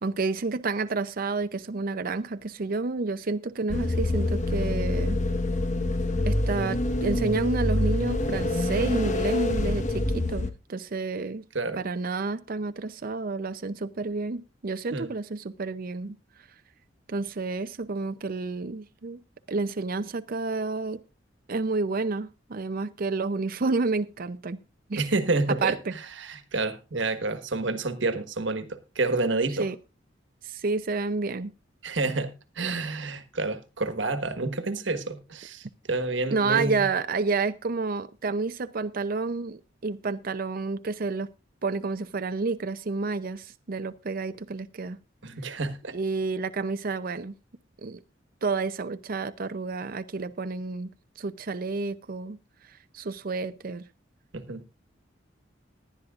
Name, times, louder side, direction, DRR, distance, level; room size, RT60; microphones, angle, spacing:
voice 1, 0.0-5.2 6.3-11.4 11.8-16.2 17.1-19.2 19.5-21.0 21.5-24.6 24.9-25.1 25.6-25.9 29.6-29.8 30.4-31.5 36.3-41.3 41.6-45.0 45.9-47.3 47.8-48.0 48.4-50.9 51.2-52.4 52.7-53.8, right 3 dB, 50° right, 0.6 m, -30 dB
sound 1, 3.7-10.5, left 1 dB, 40° left, 1.2 m, -26 dB
voice 2, 24.9-29.7 31.8-36.8 45.2-45.9 54.3-54.6, right 3 dB, 70° right, 1.4 m, -29 dB
18.5 x 11.0 x 2.4 m
head